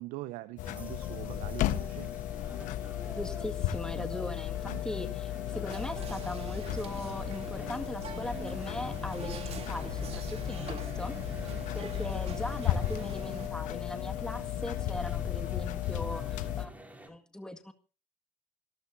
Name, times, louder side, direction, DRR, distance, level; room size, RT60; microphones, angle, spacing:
voice 1, 0.0-2.2 3.9-4.1 4.7-4.8 11.5-11.7, right 18 dB, 70° right, 15 dB, 0.8 m, -43 dB
sound 1, 0.6-16.7, left 12 dB, 70° left, 1.2 m, -35 dB
sound 2, 0.6-17.1, right 1 dB, 10° right, 4.9 m, -48 dB
voice 2, 3.2-11.1 11.7-16.7 17.1-17.7, left 1 dB, 5° left, 7 dB, 1.9 m, -40 dB
Whispering, 5.7-13.5, right 5 dB, 50° right, 2.9 m, -44 dB
26.0 x 13.0 x 2.7 m, 0.34 s
hypercardioid pair, 55°, 14 cm